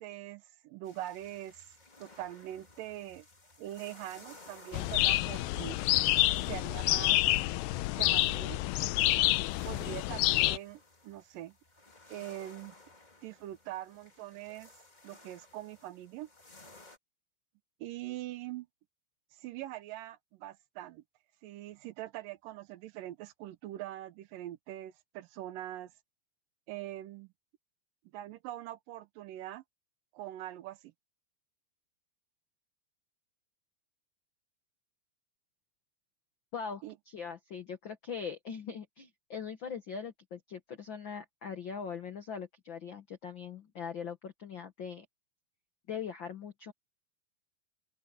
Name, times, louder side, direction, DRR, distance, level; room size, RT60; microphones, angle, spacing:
voice 1, 0.0-1.6 2.0-3.3 3.6-5.8 6.4-7.2 7.9-8.6 9.6-11.6 12.1-12.8 13.2-14.7 15.0-16.3 17.8-18.7 19.4-21.0 21.4-25.9 26.7-27.3 28.1-29.6 30.1-30.9 36.8-37.0, right 14 dB, 75° right, 2.4 m, -43 dB
sound 1, 0.8-17.0, left 2 dB, 20° left, 1.4 m, -57 dB
sound 2, 4.7-10.6, left 18 dB, 90° left, 2.4 m, -28 dB
voice 2, 36.5-45.0 45.9-46.7, left 6 dB, 70° left, 1.1 m, -41 dB
open air
omnidirectional pair, 4.1 m